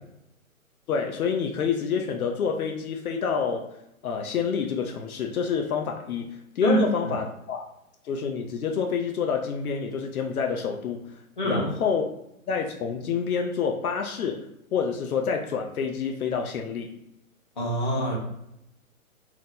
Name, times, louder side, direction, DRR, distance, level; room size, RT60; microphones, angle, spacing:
voice 1, 0.9-3.8 4.0-7.7 8.0-11.1 11.4-12.1 12.5-17.0, left 6 dB, 80° left, 0.6 m, -28 dB
voice 2, 6.6-7.1 11.4-11.7 17.6-18.2, right 1 dB, 35° left, 0.9 m, -25 dB
2.9 x 2.0 x 3.6 m
hypercardioid pair, 170°, 42 cm